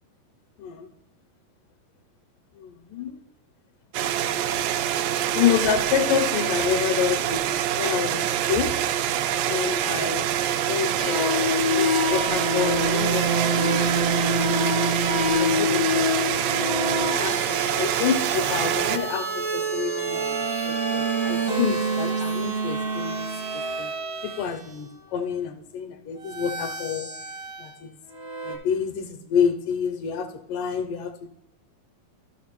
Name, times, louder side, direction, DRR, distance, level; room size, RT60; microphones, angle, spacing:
voice 1, 0.6-0.9 2.5-3.2 5.3-8.7 9.5-10.3 10.6-14.3 15.4-16.4 17.1-23.3 23.5-23.9 24.2-27.1 27.6-28.0 28.4-31.3, left 8 dB, 80° left, 6 dB, 2.1 m, -28 dB
sound 1, 3.9-19.0, right 10 dB, 80° right, 2.1 m, -25 dB
sound 2, 11.0-24.6 26.2-27.7 28.1-28.5, equal, 60° right, 0.8 m, -27 dB
13.5 x 6.1 x 2.9 m, 0.89 s
omnidirectional pair, 4.1 m